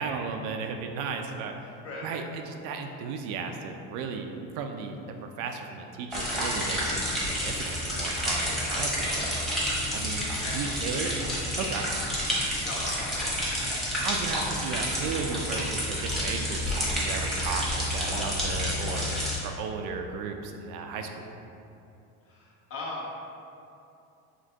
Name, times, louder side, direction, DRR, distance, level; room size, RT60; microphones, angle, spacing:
voice 1, 0.0-1.7 2.0-4.3 4.6-5.0 5.4-9.3 9.9-10.3 10.5-11.2 11.6-11.9 14.0-21.3, right 5 dB, 70° right, 4 dB, 0.5 m, -35 dB
voice 2, 1.6-2.1 9.0-9.5 10.1-11.2 12.6-13.4 22.2-23.3, left 2 dB, 45° left, -5 dB, 1.2 m, -40 dB
sound 1, 6.1-19.4, equal, ahead, 1.1 m, -29 dB
5.1 x 3.4 x 2.8 m, 2.7 s
cardioid pair, 135°, 33 cm